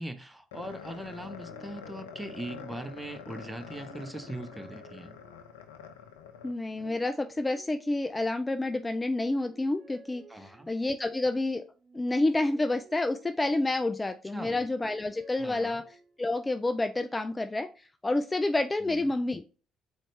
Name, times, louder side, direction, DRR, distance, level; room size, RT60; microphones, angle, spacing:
voice 1, 0.0-5.1 10.3-10.7 14.2-14.6 15.4-15.8 18.8-19.0, right 1 dB, 10° right, 0.7 m, -40 dB
sound 1, 0.5-6.9, left 7 dB, 80° left, 0.5 m, -46 dB
sound 2, 1.1-3.2 3.7-5.7 6.4-8.5 9.0-11.0 11.7-13.9 14.4-16.4, right 3 dB, 45° right, 1.8 m, -55 dB
voice 2, 6.4-11.6 11.9-15.8 16.2-19.4, left 2 dB, 20° left, 0.3 m, -29 dB
4.0 x 3.2 x 3.2 m
figure-of-eight pair, 50°, 0 cm